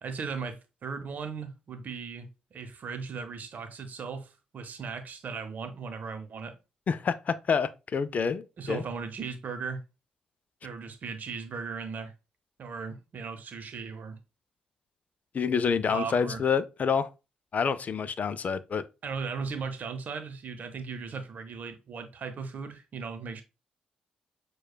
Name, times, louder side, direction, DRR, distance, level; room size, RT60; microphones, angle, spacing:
voice 1, 0.0-6.5 8.6-9.8 10.6-12.1 12.6-14.2 15.9-16.4 19.0-23.4, right 5 dB, 55° right, 0.7 m, -37 dB
voice 2, 6.9-8.8 15.3-17.1 17.5-18.8, left 6 dB, 50° left, 0.3 m, -28 dB
6.3 x 2.3 x 2.2 m
hypercardioid pair, 45°, 3 cm